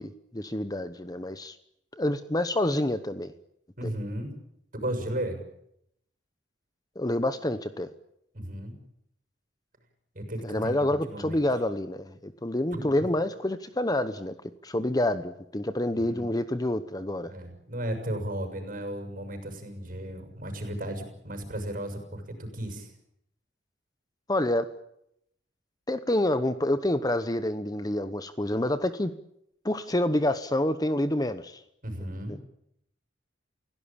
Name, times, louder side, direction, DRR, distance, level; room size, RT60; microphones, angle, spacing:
voice 1, 0.0-1.6 1.9-3.3 7.0-7.9 10.4-14.3 14.6-17.3 24.3-24.7 25.9-29.1 29.6-31.6, left 1 dB, 20° left, 12 dB, 0.9 m, -28 dB
voice 2, 3.8-4.4 4.7-5.4 8.3-8.7 10.2-11.4 12.7-13.1 16.1-16.3 17.3-22.9 31.8-32.4, right 1 dB, 50° right, 6 dB, 6.9 m, -35 dB
29.5 x 16.5 x 8.8 m, 0.77 s
head